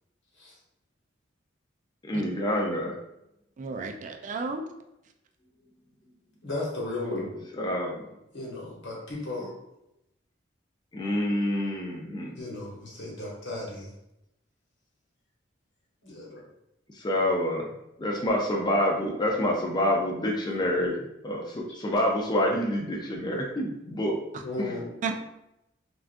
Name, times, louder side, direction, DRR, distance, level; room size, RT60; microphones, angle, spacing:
voice 1, 2.0-3.0 7.5-8.1 10.9-12.3 16.9-17.7 18.0-24.2 24.6-24.7, left 1 dB, 25° left, 0 dB, 0.4 m, -27 dB
voice 2, 3.6-4.6 24.3-24.4 25.0-25.1, right 4 dB, 45° right, 5 dB, 0.3 m, -32 dB
voice 3, 6.4-7.4 8.3-9.5 12.4-14.0 16.0-16.5 24.4-24.9, left 2 dB, 85° left, -3 dB, 1.1 m, -35 dB
3.5 x 2.4 x 2.5 m, 0.85 s
head